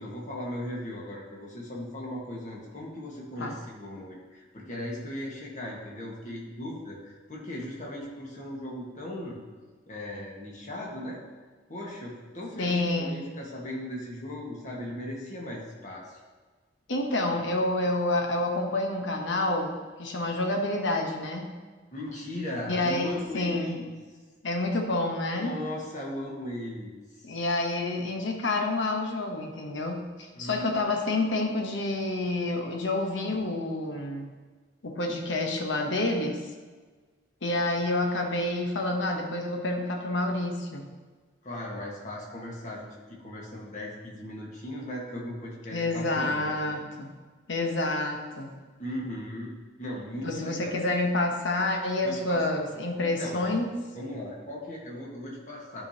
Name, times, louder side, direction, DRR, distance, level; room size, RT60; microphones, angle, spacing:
voice 1, 0.0-9.4 9.9-11.2 11.7-16.2 21.9-23.9 25.3-27.4 30.3-31.0 41.4-46.7 48.8-49.5 49.8-50.8 52.0-52.4 53.0-53.5 53.9-55.9, left 1 dB, 40° left, -3 dB, 1.5 m, -38 dB
voice 2, 12.6-13.2 16.9-21.5 22.7-23.8 24.4-25.6 27.2-34.3 34.8-36.4 37.4-40.8 45.7-47.1 47.5-48.5 50.2-53.7, left 2 dB, 65° left, 3 dB, 1.0 m, -28 dB
11.0 x 5.0 x 2.9 m, 1.4 s
head